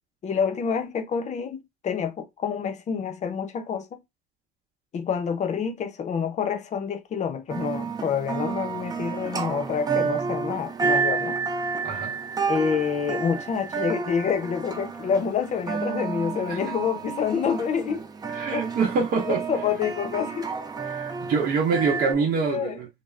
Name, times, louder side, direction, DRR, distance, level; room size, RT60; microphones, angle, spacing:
voice 1, 0.2-4.0 4.9-11.4 12.5-18.0 18.5-18.7 19.3-20.5 22.4-22.8, left 6 dB, 45° left, 0.6 m, -27 dB
sound 1, 7.5-22.1, right 5 dB, 25° right, 0.5 m, -30 dB
voice 2, 11.8-12.2 16.5-16.6 18.3-19.4 20.8-22.9, right 5 dB, 60° right, 0.8 m, -25 dB
2.4 x 2.0 x 3.2 m
cardioid pair, 110°, 17 cm